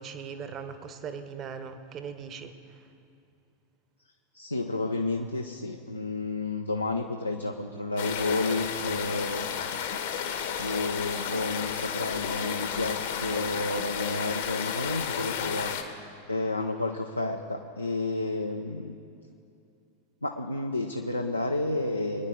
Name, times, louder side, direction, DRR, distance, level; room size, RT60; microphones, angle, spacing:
voice 1, 0.0-2.5, right 6 dB, 30° right, 9 dB, 1.1 m, -39 dB
voice 2, 4.3-10.0 10.4-15.7 16.3-19.0 20.2-22.3, left 2 dB, 85° left, 3 dB, 0.6 m, -31 dB
sound 1, 8.0-15.8, left 8 dB, 60° left, 1.3 m, -32 dB
23.5 x 9.8 x 3.9 m, 2.6 s
figure-of-eight pair, 90°, 0 cm